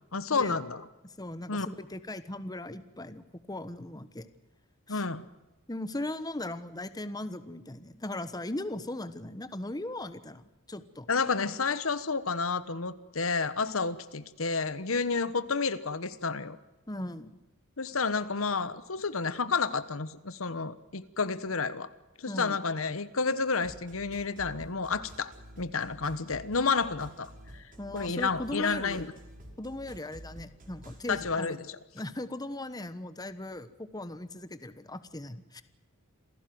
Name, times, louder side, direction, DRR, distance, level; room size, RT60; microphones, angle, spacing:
voice 1, 0.1-0.9 1.5-1.7 4.9-5.2 11.1-16.6 17.8-21.9 22.2-27.6 27.9-29.1 31.1-31.8, left 4 dB, 75° left, 14 dB, 1.2 m, -30 dB
voice 2, 1.2-4.3 4.9-5.0 5.7-11.1 16.9-17.4 22.3-22.6 27.8-29.0 29.6-31.6 31.9-35.6, left 1 dB, 20° left, 12 dB, 1.2 m, -38 dB
sound 1, 23.6-31.3, equal, 40° right, 5.6 m, -50 dB
27.5 x 16.5 x 7.8 m, 1.1 s
head